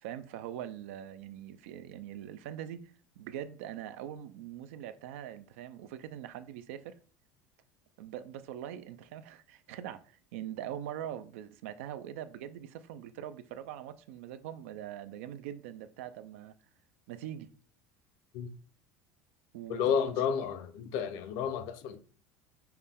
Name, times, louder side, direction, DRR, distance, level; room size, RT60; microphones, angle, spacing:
voice 1, 0.0-2.8 3.2-7.0 8.0-16.5 17.1-17.5 19.5-20.0, right 11 dB, 85° right, 0.4 m, -42 dB
voice 2, 19.7-22.0, left 7 dB, 65° left, 0.5 m, -31 dB
5.6 x 2.2 x 3.5 m
supercardioid pair, 125°, 7 cm